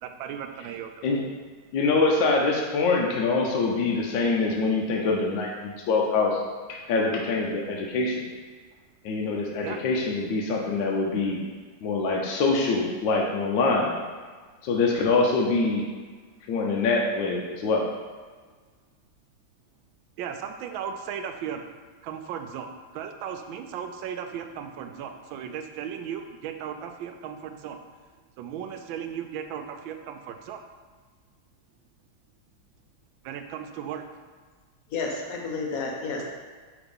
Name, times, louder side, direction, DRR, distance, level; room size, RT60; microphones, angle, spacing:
voice 1, 0.0-1.0 9.6-9.8 20.2-21.6 22.0-22.7 22.9-27.8 28.4-30.6 33.2-34.0, right 8 dB, 90° right, 6 dB, 1.3 m, -36 dB
voice 2, 1.7-6.4 6.7-8.3 9.0-11.4 11.8-13.9 14.6-15.8 16.5-17.9, left 3 dB, 75° left, -1 dB, 1.4 m, -24 dB
voice 3, 34.9-36.2, left 4 dB, 60° left, 0 dB, 1.1 m, -31 dB
5.0 x 3.6 x 5.2 m, 1.5 s
omnidirectional pair, 2.1 m